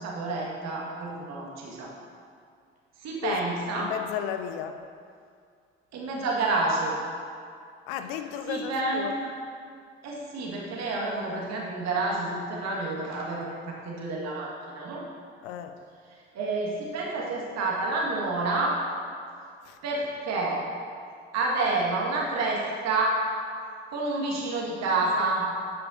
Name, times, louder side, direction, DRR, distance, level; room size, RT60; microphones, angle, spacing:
voice 1, 0.0-1.9 3.0-3.9 5.9-6.9 8.5-9.3 10.0-15.0 16.3-18.8 19.8-20.6 21.3-23.2 23.9-25.5, right 3 dB, 55° right, -2 dB, 1.8 m, -29 dB
voice 2, 3.2-4.8 7.9-9.1 15.4-15.8 19.6-19.8, left 9 dB, 65° left, 8 dB, 0.6 m, -34 dB
11.0 x 8.6 x 2.7 m, 2.2 s
figure-of-eight pair, 45°, 32 cm